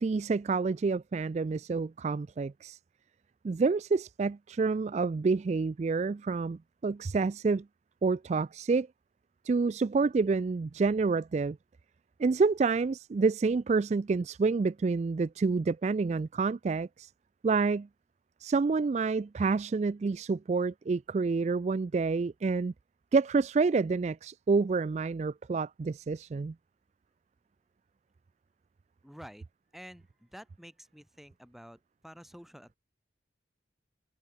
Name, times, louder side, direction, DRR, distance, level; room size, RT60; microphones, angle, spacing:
voice 1, 0.0-2.8 3.4-7.6 8.0-8.9 9.4-11.6 12.2-17.1 17.4-17.9 18.4-22.7 23.1-26.5, right 4 dB, 35° right, 0.3 m, -28 dB
voice 2, 29.0-29.5 29.7-32.8, equal, ahead, 3.1 m, -50 dB
head